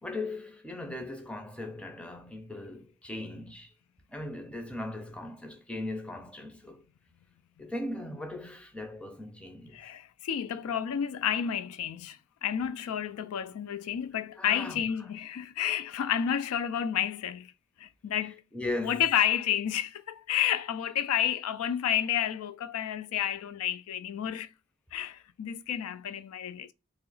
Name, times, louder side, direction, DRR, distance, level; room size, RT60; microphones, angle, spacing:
voice 1, 0.0-3.7 4.1-6.8 7.6-9.8 14.4-14.8 18.5-19.0, left 2 dB, 5° left, 0.5 m, -38 dB
voice 2, 9.7-17.5 17.8-18.4 18.8-24.5 24.9-26.7, left 9 dB, 90° left, 0.3 m, -30 dB
3.0 x 2.8 x 3.9 m
head